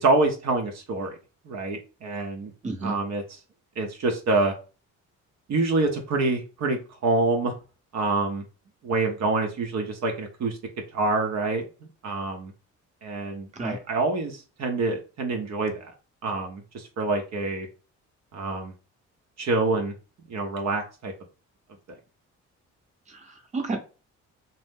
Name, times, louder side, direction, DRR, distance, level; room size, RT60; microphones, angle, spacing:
voice 1, 0.0-1.2 1.5-2.5 2.8-3.4 3.8-4.5 5.5-7.5 7.9-8.4 8.8-10.6 10.9-11.6 12.0-12.5 13.0-15.9 16.2-17.7 18.3-18.7 19.4-19.9 20.3-21.1, right 3 dB, 60° right, 3 dB, 0.7 m, -26 dB
voice 2, 23.1-23.8, right 3 dB, 25° right, 3 dB, 0.8 m, -31 dB
2.6 x 2.0 x 3.5 m, 0.33 s
cardioid pair, 90°, 30 cm